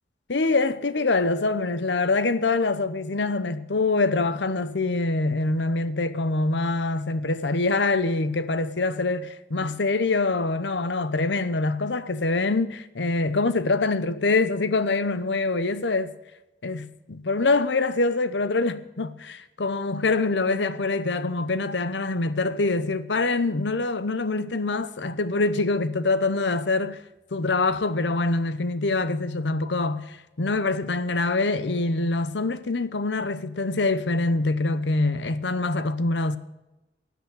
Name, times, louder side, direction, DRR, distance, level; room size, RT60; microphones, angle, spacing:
voice 1, 0.3-16.1 16.6-27.0 27.3-36.4, left 3 dB, 80° left, 0.9 m, -25 dB
12.5 x 8.2 x 8.2 m
head